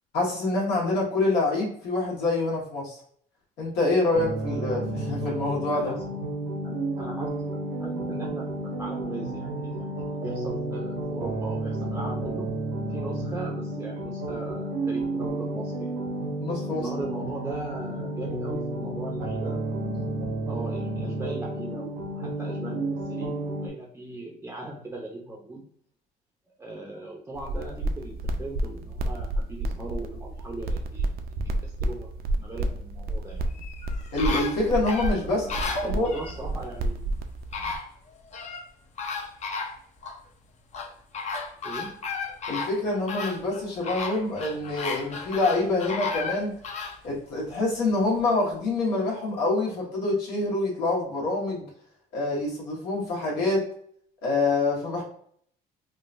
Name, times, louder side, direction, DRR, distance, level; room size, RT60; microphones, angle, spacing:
voice 1, 0.1-3.0 3.6-5.9 16.4-16.9 34.1-35.5 35.8-36.1 42.5-46.5 47.0-51.7 52.1-53.7 54.2-55.0, left 2 dB, 85° left, -4 dB, 1.3 m, -26 dB
sound 1, 4.1-23.7, right 2 dB, 80° right, 0.8 m, -31 dB
voice 2, 5.7-6.2 6.6-12.5 12.9-15.9 16.7-19.6 20.5-25.6 26.6-31.3 31.6-33.5 35.2-37.1 37.6-37.8 41.6-41.9, right 2 dB, 15° right, -2 dB, 0.5 m, -39 dB
sound 2, 27.4-37.8, right 1 dB, 65° right, 0.4 m, -31 dB
sound 3, 33.5-36.4 37.1-37.2 37.5-38.7 39.0-40.2 40.7-47.0 47.5-47.6, left 4 dB, 45° left, 0.6 m, -34 dB
3.7 x 2.2 x 2.5 m, 0.63 s
cardioid pair, 110°, 17 cm